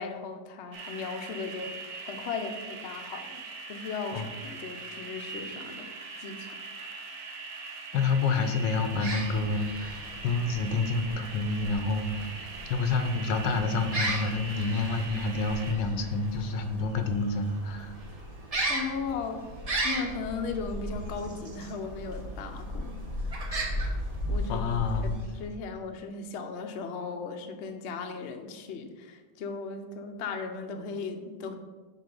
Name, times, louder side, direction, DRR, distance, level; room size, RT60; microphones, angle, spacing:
voice 1, 0.0-3.4 3.7-5.9 6.2-6.6 18.7-19.5 19.8-23.4 24.3-24.7 25.0-31.5, left 4 dB, 55° left, 5 dB, 0.7 m, -37 dB
sound 1, 0.7-15.7, right 4 dB, 70° right, 1.5 m, -42 dB
voice 2, 7.9-18.0 24.5-25.2, left 3 dB, 85° left, 7 dB, 1.4 m, -28 dB
sound 2, 8.9-25.6, right 1 dB, 30° right, 0.7 m, -36 dB
6.2 x 4.8 x 5.3 m, 1.3 s
omnidirectional pair, 1.9 m